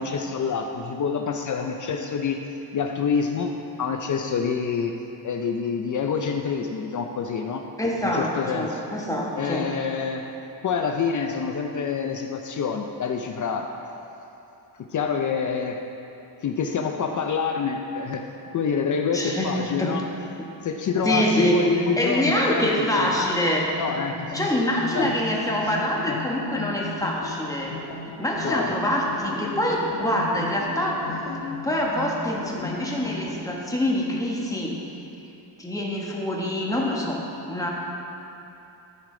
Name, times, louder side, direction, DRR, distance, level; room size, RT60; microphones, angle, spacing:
voice 1, 0.0-2.4 2.7-4.9 5.2-7.6 8.0-8.8 9.4-10.3 10.6-13.7 14.8-15.8 16.4-18.3 18.5-20.0 20.6-23.1 23.8-24.4 24.9-25.1 25.6-25.7 26.1-26.2 28.4-28.7, left 6 dB, 45° left, 4 dB, 0.5 m, -27 dB
voice 2, 7.8-9.7 19.1-19.9 21.0-21.7 22.0-23.7 24.3-27.8 28.2-31.3 31.6-34.8 35.6-37.2 37.5-37.7, left 1 dB, 10° left, -3 dB, 1.2 m, -25 dB
sound 1, 20.9-33.6, left 4 dB, 75° left, 1.4 m, -37 dB
13.5 x 4.9 x 3.8 m, 2.8 s
cardioid pair, 125°, 44 cm